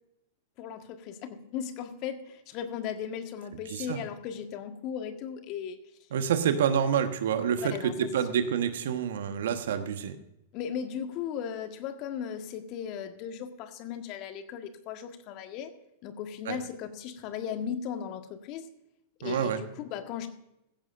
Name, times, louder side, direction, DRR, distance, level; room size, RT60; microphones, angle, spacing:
voice 1, 0.6-5.8 7.6-8.1 10.5-15.7 16.0-18.7 19.2-20.3, left 8 dB, 45° left, 7 dB, 1.6 m, -37 dB
voice 2, 6.1-10.1 16.5-16.6 19.2-19.6, right 8 dB, 65° right, 9 dB, 1.3 m, -28 dB
15.5 x 15.5 x 2.6 m, 0.86 s
hypercardioid pair, 100°, 0 cm